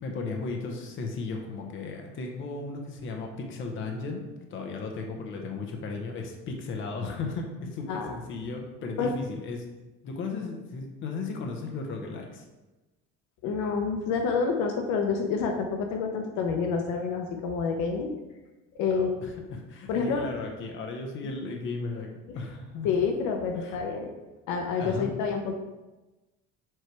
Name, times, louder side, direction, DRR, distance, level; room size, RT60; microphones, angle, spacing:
voice 1, 0.0-4.2 4.5-9.6 10.0-12.5 18.9-22.1 22.3-22.9 23.5-23.8 24.8-25.1, left 3 dB, 40° left, 2 dB, 0.9 m, -35 dB
voice 2, 13.4-18.1 18.8-19.3 19.9-20.2 21.2-21.3 22.3-22.4 22.8-24.1 24.5-25.5, left 5 dB, 65° left, 3 dB, 0.8 m, -28 dB
7.7 x 3.3 x 4.6 m, 1.1 s
cardioid pair, 175°, 32 cm